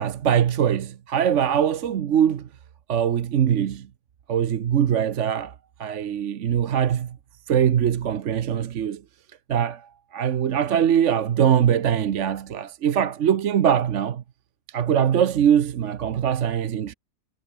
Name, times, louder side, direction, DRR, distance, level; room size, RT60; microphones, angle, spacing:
voice 1, 0.0-2.5 2.9-3.9 4.3-5.5 5.8-7.2 7.5-9.0 9.5-14.2 14.7-16.9, right 9 dB, 60° right, 1.1 m, -22 dB
omnidirectional pair, 1.5 m